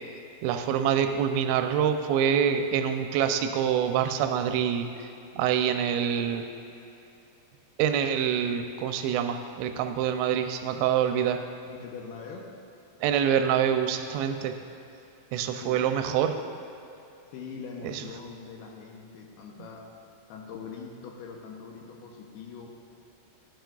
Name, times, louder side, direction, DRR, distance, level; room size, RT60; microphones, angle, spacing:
voice 1, 0.4-5.1 5.4-6.5 7.8-11.4 13.0-14.5 15.3-16.4 17.8-18.0, right 8 dB, 90° right, 7 dB, 2.8 m, -26 dB
voice 2, 11.7-12.5 15.5-15.9 17.3-19.8 20.3-22.7, left 5 dB, 80° left, 0 dB, 2.5 m, -42 dB
12.5 x 10.0 x 2.3 m, 2.9 s
omnidirectional pair, 4.9 m